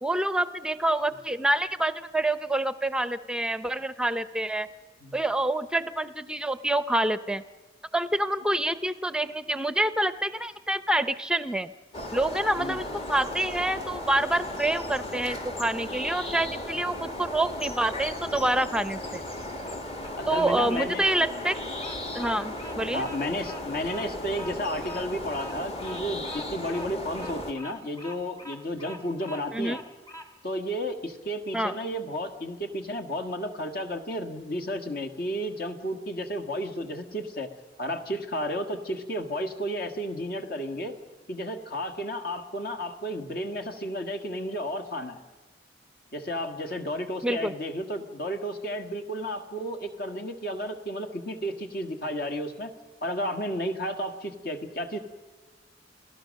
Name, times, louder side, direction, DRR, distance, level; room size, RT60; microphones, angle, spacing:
voice 1, 0.0-4.7 5.1-7.4 7.9-11.7 12.1-19.2 20.3-21.6 22.1-23.0 29.5-29.8 31.5-31.7 47.2-47.5, right 1 dB, 5° right, 13 dB, 0.6 m, -27 dB
sound 1, 11.9-27.5, left 1 dB, 35° left, 1.8 m, -36 dB
Bird vocalization bird call bird song, 19.4-30.3, left 1 dB, 20° left, 1.9 m, -45 dB
voice 2, 20.2-21.4 22.9-29.8 30.4-37.5 37.8-41.0 41.3-45.2 46.1-52.7 53.0-55.0, equal, 55° left, 7 dB, 1.7 m, -32 dB
28.0 x 17.0 x 6.4 m, 1.2 s
head